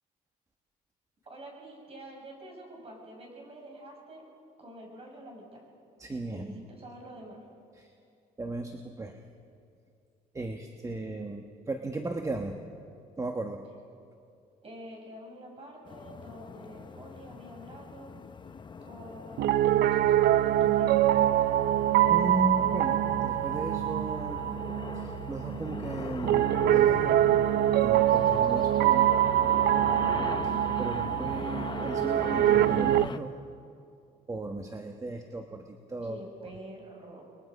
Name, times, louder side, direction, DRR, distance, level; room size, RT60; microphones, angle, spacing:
voice 1, 1.3-4.2 4.6-5.6 6.3-7.4 14.6-18.2 18.8-21.1 36.0-37.2, right 1 dB, 35° right, 0 dB, 7.2 m, -47 dB
voice 2, 6.0-6.7 7.7-7.9 8.4-9.2 10.3-12.6 13.2-13.7 22.1-24.4 24.9-27.2 27.8-29.1 30.4-33.3 34.3-36.5, right 2 dB, 20° right, 4 dB, 1.3 m, -36 dB
sound 1, 15.9-33.2, left 5 dB, 25° left, 0.9 m, -40 dB
Piano, 19.4-33.1, right 12 dB, 70° right, 0.6 m, -24 dB
30.0 x 21.5 x 5.4 m, 2.4 s
cardioid pair, 110°, 17 cm